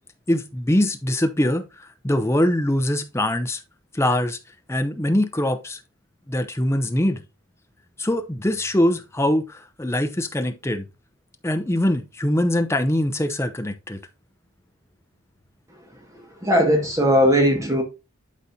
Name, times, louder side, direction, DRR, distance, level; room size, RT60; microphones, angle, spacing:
voice 1, 0.3-3.6 3.9-4.4 4.7-5.8 6.3-7.2 8.0-10.9 11.4-14.0, left 1 dB, 10° left, 0.6 m, -23 dB
voice 2, 16.4-17.8, equal, 15° right, 1.8 m, -18 dB
11.5 x 4.1 x 2.7 m
head